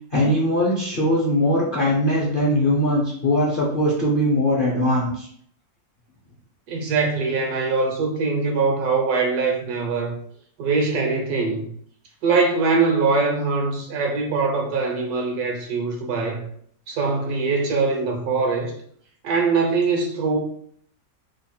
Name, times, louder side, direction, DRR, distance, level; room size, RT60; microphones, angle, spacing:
voice 1, 0.1-5.3, equal, 45° left, 0.7 m, -20 dB
voice 2, 6.7-10.1 10.6-11.7 12.2-16.4 16.9-18.7 19.2-20.4, right 4 dB, 70° right, 1.1 m, -22 dB
3.1 x 2.4 x 4.2 m
omnidirectional pair, 1.9 m